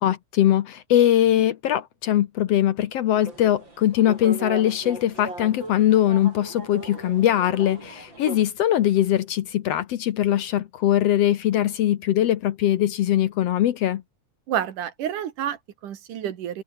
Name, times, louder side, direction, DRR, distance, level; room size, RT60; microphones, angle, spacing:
voice 1, 0.0-14.0, left 12 dB, 65° left, 1.7 m, -21 dB
sound 1, 3.1-8.4, right 2 dB, 35° right, 7.1 m, -38 dB
voice 2, 14.5-16.6, right 10 dB, 85° right, 3.4 m, -29 dB
omnidirectional pair, 3.5 m